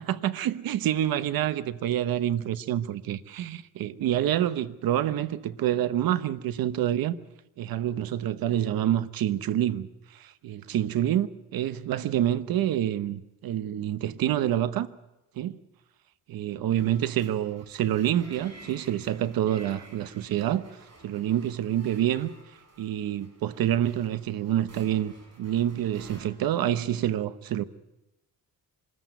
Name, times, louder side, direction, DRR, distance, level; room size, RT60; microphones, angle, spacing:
voice 1, 0.0-7.2 7.6-14.9 15.4-15.6 16.3-20.6 21.0-22.3 22.8-27.6, right 11 dB, 80° right, 1.0 m, -27 dB
sound 1, 16.8-26.2, right 2 dB, 45° right, 7.5 m, -52 dB
24.5 x 14.0 x 9.2 m
cardioid pair, 125°, 35 cm